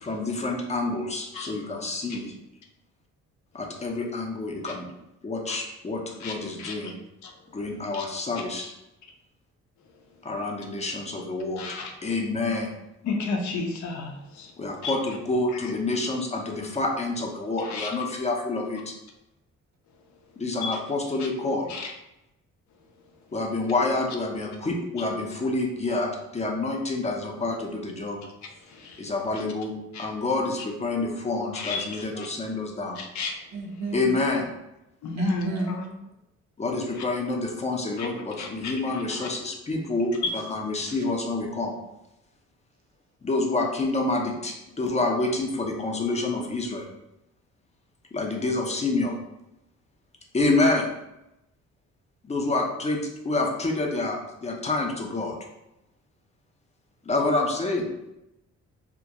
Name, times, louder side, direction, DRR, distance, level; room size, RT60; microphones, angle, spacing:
voice 1, 0.0-2.3 3.5-4.9 5.2-7.0 7.5-8.7 10.2-11.7 12.0-12.7 14.6-18.9 20.4-21.7 23.3-28.2 29.0-33.0 33.9-34.5 36.6-41.7 43.2-46.9 48.1-49.1 50.3-50.9 52.2-53.0 53.2-55.4 57.1-57.9, left 2 dB, 20° left, 0.5 m, -28 dB
voice 2, 11.6-11.9 13.0-14.5 14.8-15.0 17.6-17.9 20.6-20.8 21.7-21.9 28.7-29.0 29.9-30.1 31.5-32.3 33.0-33.3 35.0-35.8 38.0-38.1 38.4-39.3, left 3 dB, 70° left, 0.6 m, -32 dB
voice 3, 33.5-34.1 35.2-35.9, right 2 dB, 65° right, 0.6 m, -32 dB
2.3 x 2.1 x 2.8 m
cardioid pair, 90°, 30 cm